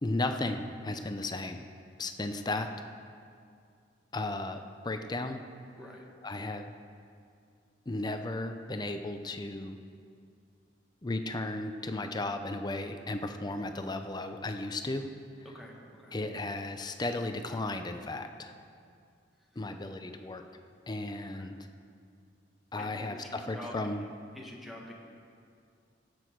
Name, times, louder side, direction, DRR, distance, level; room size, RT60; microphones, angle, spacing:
voice 1, 0.0-1.6 2.0-2.7 4.1-5.4 6.2-6.7 7.9-9.8 11.0-15.1 16.1-18.5 19.6-20.4 20.9-21.5 22.7-24.0, left 2 dB, 20° left, 7 dB, 0.6 m, -35 dB
voice 2, 15.4-16.2 19.6-19.7 21.3-21.5 22.8-23.8 24.3-24.9, left 1 dB, ahead, -2 dB, 1.6 m, -47 dB
17.5 x 7.9 x 4.6 m, 2.3 s
head